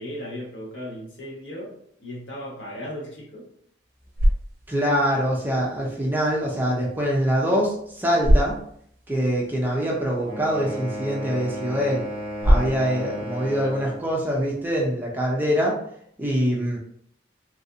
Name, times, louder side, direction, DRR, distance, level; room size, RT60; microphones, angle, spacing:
voice 1, 0.0-1.7 2.0-3.5, equal, 80° left, -4 dB, 1.3 m, -36 dB
sound 1, 3.8-14.9, equal, 50° right, 0.7 m, -28 dB
voice 2, 4.7-8.6 9.1-12.0 12.4-15.8 16.2-16.8, equal, 10° right, -3 dB, 0.6 m, -24 dB
sound 2, 10.2-14.1, equal, 45° left, 1.2 m, -33 dB
3.3 x 2.6 x 2.7 m, 0.66 s
head